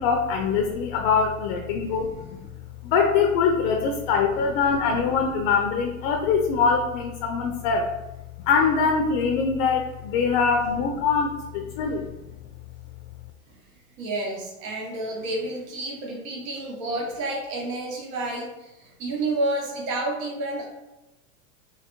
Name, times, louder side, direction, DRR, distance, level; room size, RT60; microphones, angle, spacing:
voice 1, 0.0-2.5 2.8-7.9 8.5-12.1, left 5 dB, 45° left, 3 dB, 0.4 m, -23 dB
voice 2, 14.0-20.7, right 2 dB, 65° right, -1 dB, 1.1 m, -30 dB
3.1 x 2.4 x 4.2 m, 0.96 s
supercardioid pair, 140°, 43 cm